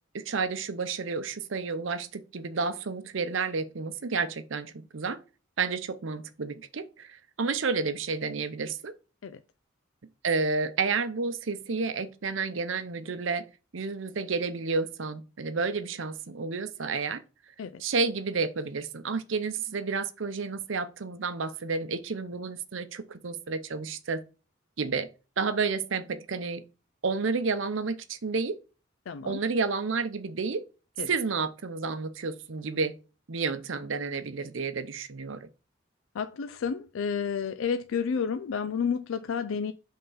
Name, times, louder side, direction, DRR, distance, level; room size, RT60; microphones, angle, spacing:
voice 1, 0.1-5.2 5.6-8.9 10.2-13.5 13.7-17.2 17.8-24.2 24.8-25.1 25.4-26.6 27.0-28.6 29.2-30.6 31.1-33.0 33.3-35.5, right 4 dB, 80° right, 0.7 m, -30 dB
voice 2, 29.1-29.4 31.0-31.1 36.1-39.7, left 6 dB, 90° left, 0.4 m, -30 dB
5.5 x 3.7 x 5.5 m
head